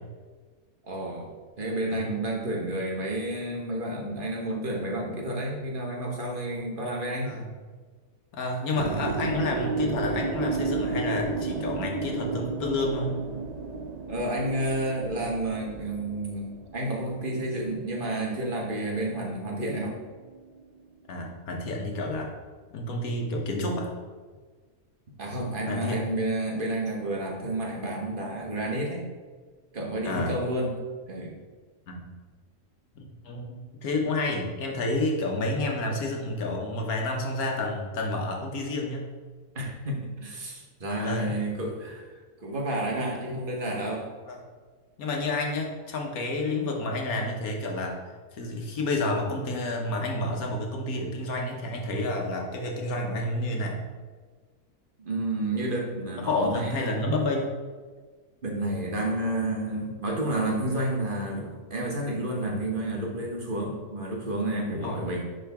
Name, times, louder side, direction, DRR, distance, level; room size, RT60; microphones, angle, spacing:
voice 1, 0.8-1.3 1.6-7.3 14.1-20.0 25.2-29.0 29.7-30.8 31.1-31.3 39.5-44.1 55.0-57.0 58.4-65.2, right 1 dB, 35° right, -1 dB, 1.2 m, -30 dB
voice 2, 8.3-13.2 19.7-19.8 21.1-22.3 22.7-23.9 25.7-26.0 30.0-30.3 31.9-32.1 33.2-39.1 41.0-41.4 44.3-44.4 45.0-48.0 48.3-53.8 56.2-57.5 64.7-65.0, left 2 dB, 70° left, 0 dB, 1.4 m, -29 dB
sound 1, 8.8-18.9 19.1-20.8, right 4 dB, 85° right, 0.3 m, -33 dB
10.0 x 3.8 x 3.5 m, 1.4 s
omnidirectional pair, 1.6 m